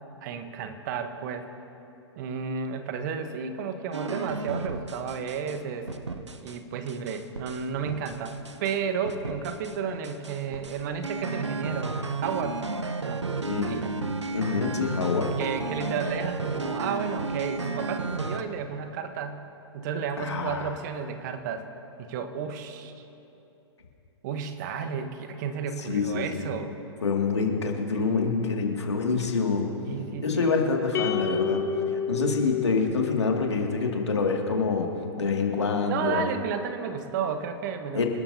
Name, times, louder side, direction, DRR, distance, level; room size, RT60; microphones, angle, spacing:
voice 1, 0.2-1.5 2.2-5.9 6.4-12.6 13.0-13.2 13.7-13.9 15.4-19.4 19.7-21.7 22.0-23.0 24.2-26.7 29.8-30.6 35.9-38.0, right 6 dB, 40° right, 8 dB, 1.1 m, -32 dB
sound 1, 3.9-5.6 5.9-6.6 6.9-8.8 9.0-9.8 10.0-18.4, right 3 dB, 80° right, 0.9 m, -33 dB
voice 2, 14.3-15.3 20.2-20.7 25.9-26.5 27.0-29.7 30.2-31.6 32.1-34.9 35.2-36.2 37.9-38.1, left 4 dB, 75° left, 1 dB, 2.3 m, -26 dB
sound 2, 30.9-33.4, left 5 dB, 20° left, 0.7 m, -29 dB
27.5 x 12.5 x 2.8 m, 2.9 s
figure-of-eight pair, 115°, 15 cm